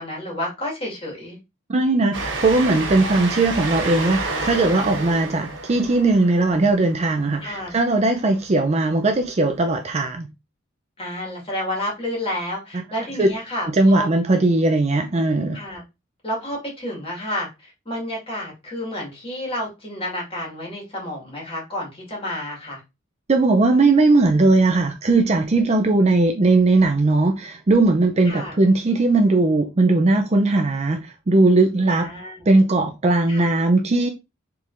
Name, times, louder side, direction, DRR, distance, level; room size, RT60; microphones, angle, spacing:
voice 1, 0.0-1.4 7.4-7.7 11.0-14.1 15.5-15.8 16.2-22.8 28.3-28.6 31.9-32.4 33.3-33.5, left 1 dB, 30° left, 1.8 m, -30 dB
voice 2, 1.7-10.3 13.2-13.3 13.7-15.6 23.3-32.1 32.5-34.1, right 2 dB, 30° right, 0.4 m, -18 dB
Train, 2.1-8.3, right 3 dB, 70° right, 1.4 m, -30 dB
4.5 x 3.5 x 2.5 m
head